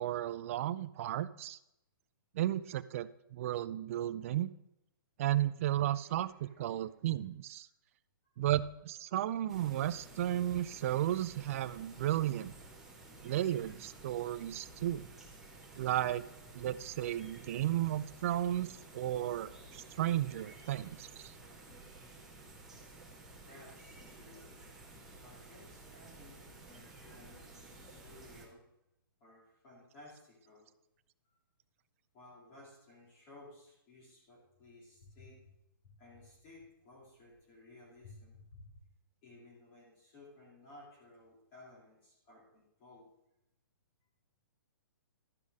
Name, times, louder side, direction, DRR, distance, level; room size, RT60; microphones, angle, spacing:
voice 1, 0.0-1.6 2.3-4.5 5.2-7.7 8.4-12.5 13.2-15.1 15.8-16.2 16.5-18.7 18.9-21.3, right 13 dB, 40° right, 13 dB, 0.4 m, -34 dB
voice 2, 5.8-6.8 13.6-13.8 18.9-19.3 23.4-24.5 25.2-28.6 29.2-30.7 31.2-31.3 32.1-35.5 35.8-38.8 39.2-43.1, left 2 dB, 30° left, -4 dB, 3.0 m, -57 dB
sound 1, 9.5-28.5, right 2 dB, 5° right, 1.5 m, -53 dB
12.0 x 5.4 x 4.9 m, 0.83 s
hypercardioid pair, 160°, 12 cm